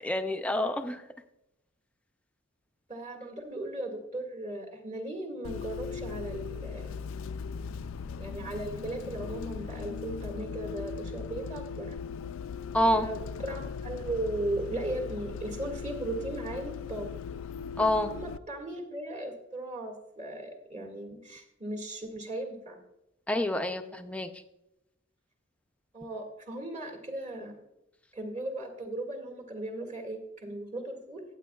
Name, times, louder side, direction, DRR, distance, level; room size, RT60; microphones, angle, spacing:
voice 1, 0.0-1.0 12.7-13.1 17.8-18.1 23.3-24.3, left 1 dB, 5° left, 6 dB, 0.5 m, -27 dB
voice 2, 2.9-6.9 8.2-12.0 12.8-17.1 18.1-22.8 25.9-27.6 28.1-31.2, right 1 dB, 35° right, 2 dB, 1.9 m, -37 dB
Bus, 5.4-18.4, left 6 dB, 70° left, 0.3 m, -39 dB
14.5 x 9.1 x 2.3 m, 0.86 s
head